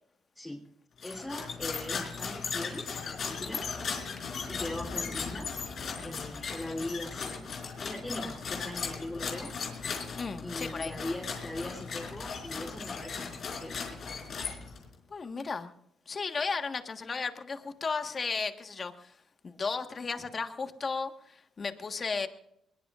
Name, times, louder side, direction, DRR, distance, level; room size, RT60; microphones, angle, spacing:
voice 1, 0.3-0.7 1.0-3.7 4.5-5.5 6.0-7.5 7.8-9.5 10.4-13.7, left 1 dB, 15° left, -1 dB, 3.4 m, -40 dB
sound 1, 1.0-14.9, left 5 dB, 55° left, 4.4 m, -37 dB
voice 2, 10.2-11.0 15.1-15.7 16.1-19.2 19.4-22.3, left 4 dB, 40° left, 7 dB, 1.5 m, -34 dB
21.5 x 21.0 x 2.5 m, 0.74 s
cardioid pair, 90°, 0 cm